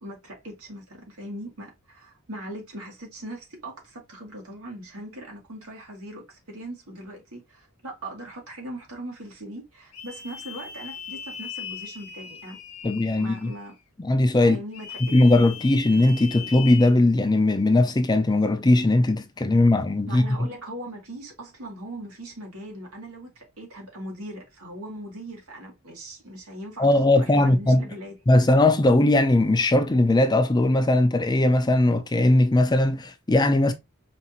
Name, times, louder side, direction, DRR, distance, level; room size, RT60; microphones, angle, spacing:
voice 1, 0.0-12.6 12.8-13.7 14.4-15.3 20.1-28.2, right 1 dB, 85° right, 1.9 m, -40 dB
sound 1, 9.9-13.8 14.7-16.9, left 7 dB, 80° left, 0.9 m, -39 dB
voice 2, 12.8-13.5 14.0-14.6 15.1-20.2 26.8-27.9 28.3-33.7, left 2 dB, 20° left, 0.4 m, -19 dB
5.0 x 2.6 x 2.8 m
head